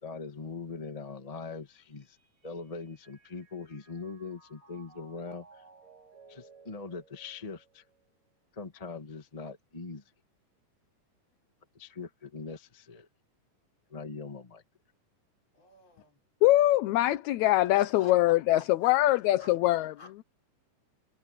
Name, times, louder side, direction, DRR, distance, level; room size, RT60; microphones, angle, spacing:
voice 1, 0.0-2.2 2.4-5.6 6.3-7.8 8.5-10.0 11.7-13.1 13.9-14.6, left 4 dB, 20° left, 1.0 m, -41 dB
Mallet percussion, 1.7-8.2, right 4 dB, 75° right, 7.0 m, -59 dB
voice 2, 15.5-16.2 17.7-20.2, left 4 dB, 50° left, 6.0 m, -51 dB
voice 3, 16.4-19.9, left 15 dB, 75° left, 1.9 m, -23 dB
omnidirectional pair, 3.7 m